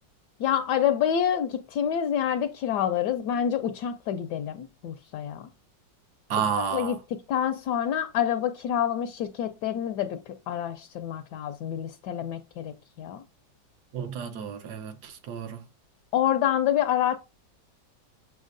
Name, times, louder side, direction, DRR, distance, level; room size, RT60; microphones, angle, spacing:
voice 1, 0.4-5.5 6.7-10.2 10.5-13.2 16.1-17.2, left 9 dB, 75° left, 1.1 m, -27 dB
voice 2, 6.3-7.0 13.9-15.7, right 7 dB, 65° right, 1.3 m, -31 dB
6.8 x 6.3 x 2.6 m
omnidirectional pair, 2.0 m